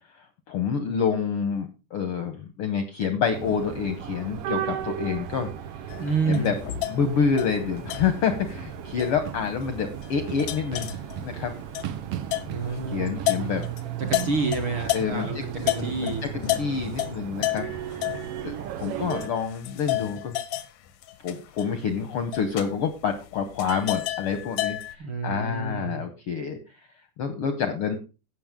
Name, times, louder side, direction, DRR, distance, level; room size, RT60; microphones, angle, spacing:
voice 1, 0.5-5.5 6.2-6.5 6.9-11.5 12.9-13.7 14.9-17.7 18.4-20.4 21.2-26.6 27.2-28.0, left 6 dB, 70° left, 8 dB, 1.4 m, -28 dB
sound 1, 3.3-19.3, right 10 dB, 85° right, 1.3 m, -35 dB
sound 2, 5.9-15.3 15.6-25.0, left 15 dB, 90° left, 2.6 m, -32 dB
voice 2, 6.0-6.5 12.5-13.1 14.1-15.4 15.6-16.3 25.0-26.0, right 4 dB, 50° right, 3 dB, 1.6 m, -28 dB
16.5 x 6.4 x 3.6 m, 0.30 s
omnidirectional pair, 3.7 m